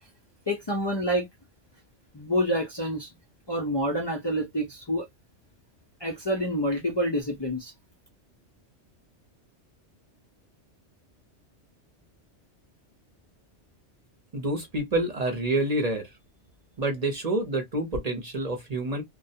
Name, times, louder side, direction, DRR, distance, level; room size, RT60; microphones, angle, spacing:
voice 1, 0.5-1.3 2.1-3.1 3.5-5.1 6.0-7.7, equal, 35° left, 0.4 m, -27 dB
voice 2, 14.3-16.1 16.8-19.0, right 1 dB, 40° right, 0.7 m, -28 dB
2.3 x 2.1 x 2.7 m
omnidirectional pair, 1.2 m